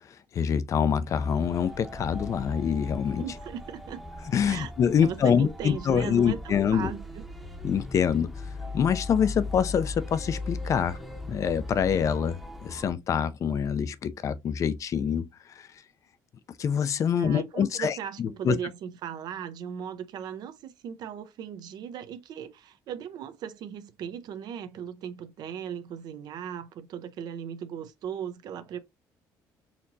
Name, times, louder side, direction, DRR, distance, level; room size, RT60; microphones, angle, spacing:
voice 1, 0.3-3.2 4.3-6.9 7.6-8.3 8.7-11.0 11.3-15.3 15.6-15.7 16.6-18.5, left 7 dB, 45° left, 0.5 m, -25 dB
sound 1, 1.1-12.9, left 2 dB, ahead, 0.8 m, -39 dB
voice 2, 3.2-4.0 4.4-4.7 5.0-7.3 17.2-28.8, right 8 dB, 65° right, 0.6 m, -37 dB
4.3 x 2.9 x 2.6 m
cardioid pair, 115°, 7 cm